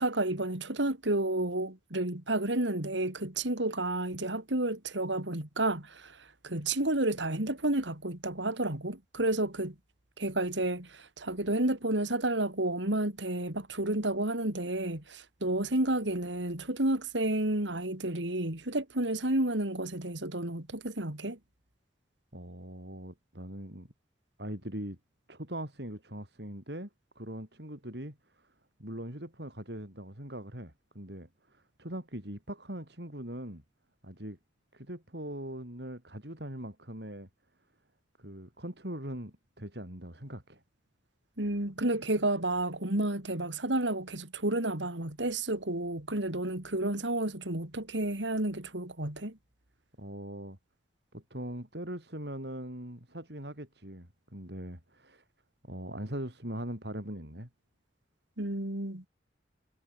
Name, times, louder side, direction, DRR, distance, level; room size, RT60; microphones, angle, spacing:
voice 1, 0.0-9.8 10.2-21.4 41.4-49.4 58.4-59.1, right 1 dB, 85° right, 3.8 m, -31 dB
voice 2, 22.3-23.9 24.4-25.0 25.3-26.9 27.1-28.5 28.8-33.6 34.0-34.4 34.7-37.3 38.2-40.6 50.0-50.6 51.1-55.2 55.6-57.5, right 1 dB, 65° right, 6.4 m, -41 dB
head